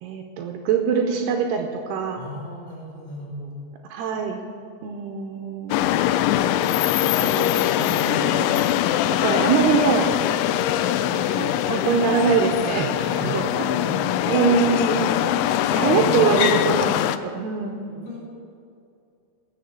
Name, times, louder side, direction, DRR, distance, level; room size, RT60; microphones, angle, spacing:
voice 1, 0.0-2.2 3.9-4.4 4.8-5.8 7.0-8.6 9.1-10.1 11.1-12.9 13.2-13.7 14.3-15.1 15.7-17.8, right 6 dB, 75° right, 3 dB, 2.6 m, -24 dB
voice 2, 2.1-3.5 12.9-13.4 13.8-14.2 17.9-18.2, left 1 dB, 50° left, -6 dB, 5.4 m, -37 dB
sound 1, 5.7-17.2, left 12 dB, 90° left, 2.9 m, -22 dB
18.0 x 7.2 x 6.6 m, 2.5 s
omnidirectional pair, 5.2 m